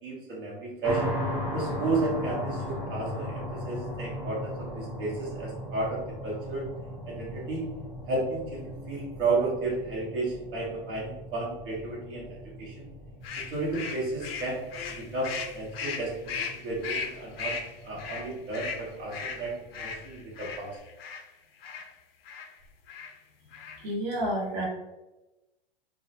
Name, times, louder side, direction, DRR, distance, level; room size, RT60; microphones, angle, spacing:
voice 1, 0.0-1.0 1.5-6.7 7.1-7.6 8.1-12.9 13.4-17.5 17.8-20.8, right 3 dB, 60° right, -4 dB, 1.0 m, -33 dB
sound 1, 0.8-20.6, left 1 dB, 5° right, 0.7 m, -38 dB
sound 2, 13.2-21.2 21.6-21.9 22.2-22.5 22.9-23.1 23.5-23.9, left 5 dB, 80° left, 0.5 m, -37 dB
voice 2, 23.8-24.7, right 1 dB, 35° right, -5 dB, 0.9 m, -29 dB
2.2 x 2.0 x 2.8 m, 1.0 s
hypercardioid pair, 130°, 29 cm